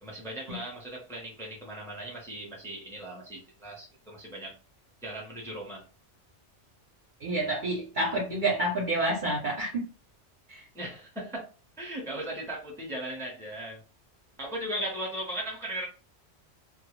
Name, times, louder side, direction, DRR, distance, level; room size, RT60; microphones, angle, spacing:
voice 1, 0.0-4.5 5.0-5.8 10.7-11.5 11.8-13.8 14.4-15.9, right 1 dB, 5° left, 0.5 m, -37 dB
voice 2, 7.2-9.9 10.5-10.6, right 1 dB, 50° right, 0.6 m, -29 dB
2.3 x 2.0 x 3.0 m
omnidirectional pair, 1.3 m